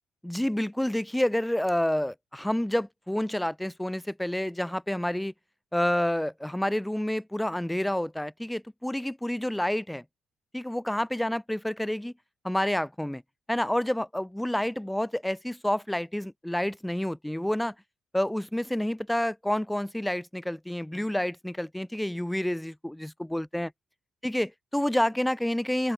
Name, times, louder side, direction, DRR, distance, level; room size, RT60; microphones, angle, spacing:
voice 1, 0.2-5.3 5.7-10.0 10.5-12.1 12.4-13.2 13.5-17.7 18.1-23.7 24.2-25.9, left 1 dB, 5° left, 0.3 m, -29 dB
open air
cardioid pair, 90°, 0 cm